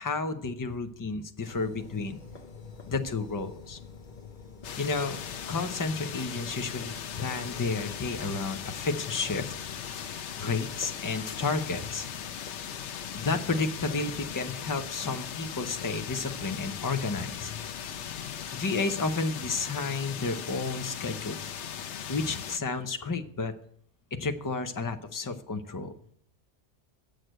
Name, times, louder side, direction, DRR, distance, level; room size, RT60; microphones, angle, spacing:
voice 1, 0.0-2.2 2.9-3.8 4.8-5.2 5.5-9.5 9.9-10.1 10.4-12.0 13.1-17.6 18.5-21.5 22.1-23.5 24.2-25.9, left 4 dB, 25° left, 7 dB, 0.5 m, -31 dB
sound 1, 1.5-18.6, left 5 dB, 45° left, 1.1 m, -48 dB
sound 2, 4.6-22.6, left 8 dB, 80° left, 1.0 m, -39 dB
7.7 x 6.5 x 7.8 m, 0.65 s
omnidirectional pair, 1.2 m